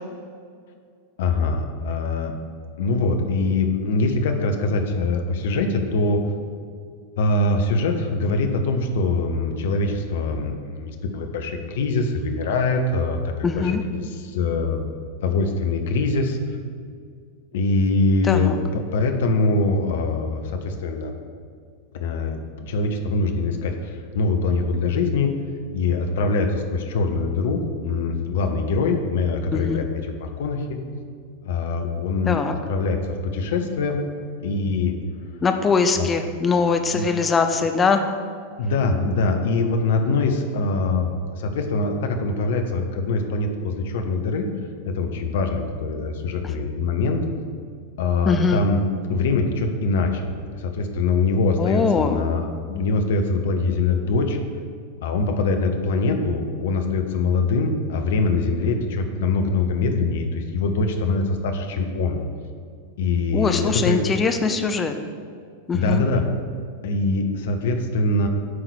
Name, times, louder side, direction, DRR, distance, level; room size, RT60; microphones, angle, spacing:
voice 1, 1.2-2.3 2.8-6.2 7.2-14.8 15.2-16.6 17.5-21.2 21.9-25.3 25.7-30.8 31.4-34.0 34.4-34.9 36.0-36.1 36.9-37.1 38.6-41.1 41.4-44.5 44.9-47.2 48.0-48.8 49.1-54.4 55.0-62.2 63.0-64.0 65.7-66.2 66.8-68.3, left 3 dB, 55° left, 5 dB, 0.8 m, -23 dB
voice 2, 13.4-13.8 18.3-18.6 29.5-29.8 32.3-32.5 35.4-38.0 48.3-48.6 51.6-52.2 63.3-64.9 65.7-66.0, left 5 dB, 20° left, 6 dB, 0.6 m, -21 dB
9.5 x 3.9 x 6.4 m, 2.1 s
figure-of-eight pair, 90°, 0 cm